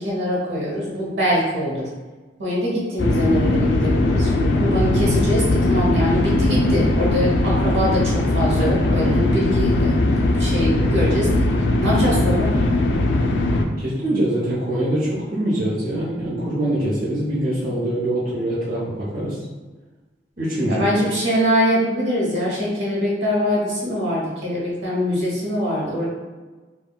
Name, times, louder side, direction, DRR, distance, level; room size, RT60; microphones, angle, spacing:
voice 1, 0.0-1.9 2.4-11.3 11.8-12.5 20.7-26.1, equal, 75° right, -5 dB, 0.9 m, -23 dB
sound 1, 3.0-13.6, left 2 dB, 70° left, 0.3 m, -19 dB
voice 2, 13.8-19.4 20.4-20.8, right 1 dB, 55° right, -9 dB, 0.8 m, -23 dB
3.5 x 2.2 x 2.2 m, 1.3 s
head